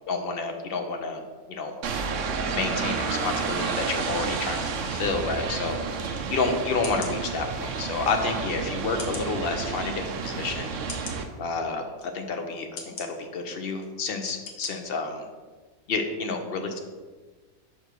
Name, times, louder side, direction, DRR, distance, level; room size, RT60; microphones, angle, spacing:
voice 1, 0.1-1.2 1.5-1.7 2.5-10.7 11.4-15.2 15.9-16.8, left 4 dB, 50° left, 5 dB, 0.8 m, -30 dB
sound 1, 1.8-11.2, right 5 dB, 65° right, 0.9 m, -30 dB
sound 2, 6.1-6.3 6.8-7.1 7.9-8.0 9.0-9.3 10.0-10.1 10.9-11.2 12.0-12.1 12.8-13.1 13.8-13.9 14.5-14.7 15.1-15.2, left 5 dB, 70° left, 1.3 m, -39 dB
6.0 x 5.3 x 4.6 m, 1.4 s
omnidirectional pair, 1.6 m